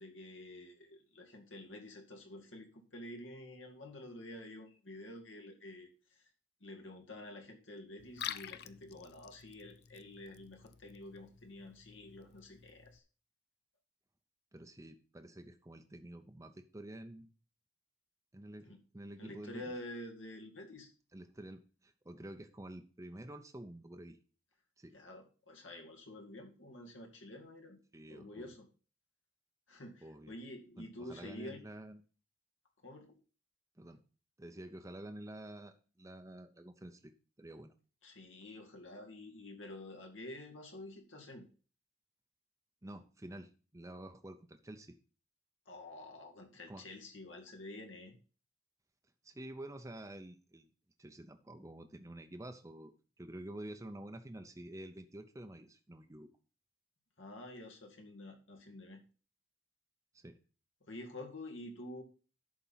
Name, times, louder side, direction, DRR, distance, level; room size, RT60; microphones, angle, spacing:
voice 1, 0.0-5.9 6.6-13.0 18.6-18.8 19.2-20.9 24.9-27.8 28.1-28.7 29.7-31.6 32.8-33.2 38.0-41.5 45.7-48.2 57.2-59.0 60.9-62.0, left 1 dB, 80° left, 3 dB, 2.3 m, -49 dB
Liquid, 8.0-13.0, left 10 dB, 55° left, 0.5 m, -49 dB
voice 2, 14.5-17.3 18.3-19.6 21.1-24.2 24.8-24.9 27.9-28.6 30.0-30.3 30.8-32.0 33.8-34.0 34.4-37.1 37.4-37.7 38.4-38.6 42.8-45.0 46.7-46.8 49.2-50.7 51.0-56.3 60.1-60.4, right 1 dB, 15° right, 6 dB, 0.6 m, -49 dB
11.0 x 4.4 x 5.6 m, 0.36 s
head